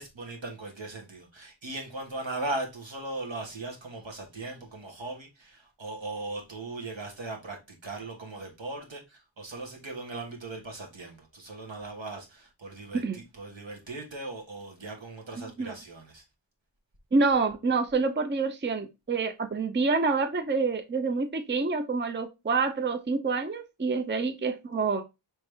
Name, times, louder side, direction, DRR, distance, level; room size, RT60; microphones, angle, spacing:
voice 1, 0.0-16.2, right 2 dB, 75° right, 1.4 m, -38 dB
voice 2, 17.1-25.0, right 4 dB, 25° right, 0.5 m, -27 dB
4.7 x 3.2 x 3.2 m
wide cardioid pair, 55°, 46 cm